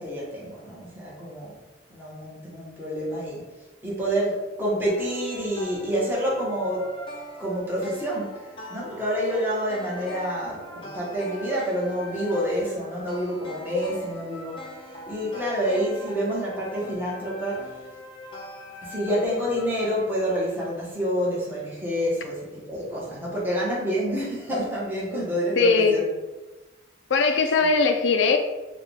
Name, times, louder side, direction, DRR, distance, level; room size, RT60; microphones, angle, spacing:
voice 1, 0.0-1.6 1.9-3.4 3.8-7.0 7.4-8.4 8.7-14.7 15.1-17.8 18.8-26.0, equal, 10° right, -7 dB, 1.1 m, -28 dB
sound 1, 4.8-20.1, left 1 dB, 30° left, 0.5 m, -41 dB
voice 2, 25.6-26.0 27.1-28.4, left 4 dB, 85° left, 5 dB, 0.4 m, -20 dB
4.6 x 2.3 x 3.4 m, 1.1 s
head